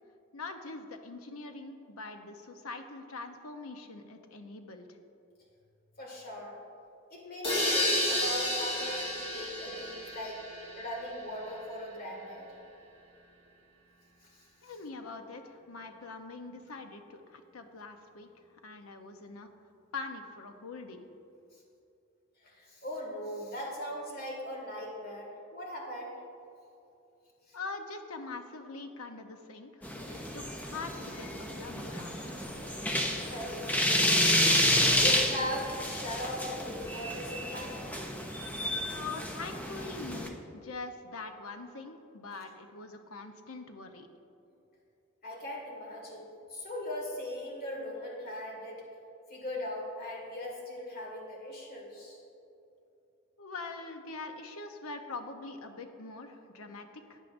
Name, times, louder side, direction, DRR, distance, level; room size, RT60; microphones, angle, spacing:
voice 1, 0.3-5.0 14.6-18.3 18.6-19.5 19.9-21.1 27.5-31.3 31.6-32.4 38.9-44.1 53.4-57.2, left 3 dB, 85° left, 6 dB, 0.8 m, -43 dB
voice 2, 6.0-6.6 7.1-10.4 10.8-12.5 14.2-14.7 22.4-26.2 27.5-27.6 30.1-30.3 33.2-34.4 34.8-37.8 45.2-48.8 49.3-52.2, left 1 dB, 45° left, -1 dB, 2.1 m, -39 dB
sound 1, 7.4-11.2, left 1 dB, 25° left, 1.7 m, -31 dB
sound 2, 29.8-40.3, equal, 5° left, 0.6 m, -30 dB
14.5 x 9.3 x 2.6 m, 2.7 s
head